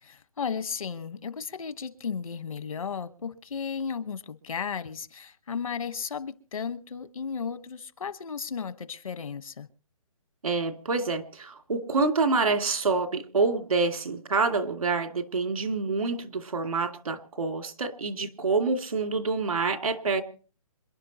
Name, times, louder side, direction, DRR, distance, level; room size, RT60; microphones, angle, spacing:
voice 1, 0.0-9.7, left 6 dB, 70° left, 1.3 m, -34 dB
voice 2, 10.4-20.2, right 4 dB, 85° right, 2.4 m, -27 dB
27.0 x 11.0 x 2.9 m
hypercardioid pair, 170°, 18 cm